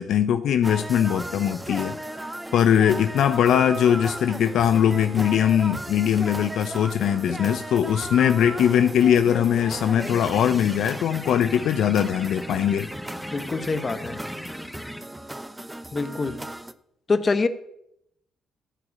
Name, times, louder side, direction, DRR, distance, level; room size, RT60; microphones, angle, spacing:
voice 1, 0.0-2.0 2.5-12.9, left 9 dB, 75° left, 10 dB, 0.6 m, -21 dB
sound 1, 0.6-16.7, right 1 dB, 10° right, 0.7 m, -36 dB
sound 2, 10.0-15.0, left 1 dB, 5° left, 1.1 m, -39 dB
voice 2, 13.3-14.2 15.9-16.4 17.1-17.5, left 4 dB, 35° left, 11 dB, 1.1 m, -25 dB
13.5 x 5.0 x 8.6 m, 0.78 s
cardioid pair, 70°, 0 cm